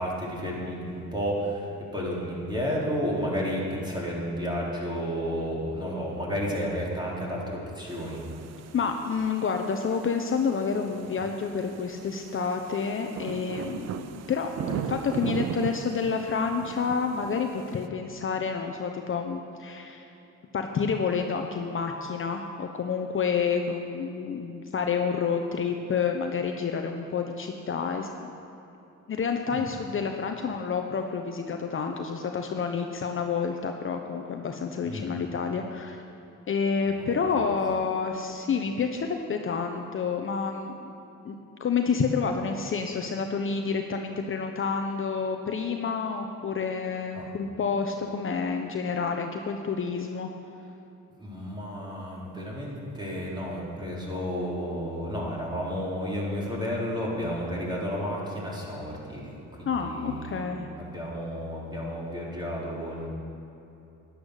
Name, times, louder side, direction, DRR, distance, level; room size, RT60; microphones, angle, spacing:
voice 1, 0.0-8.2 14.7-14.8 29.5-29.7 34.9-35.1 37.0-37.1 47.1-47.3 51.2-63.1, equal, 15° right, -5 dB, 3.8 m, -32 dB
sound 1, 7.9-17.9, right 9 dB, 60° right, 0.6 m, -38 dB
voice 2, 8.7-20.1 20.5-28.3 29.1-36.0 36.5-40.9 41.2-41.3 41.6-50.3 59.7-60.7, left 5 dB, 45° left, 4 dB, 0.8 m, -29 dB
11.5 x 10.5 x 6.5 m, 2.8 s
cardioid pair, 90°, 30 cm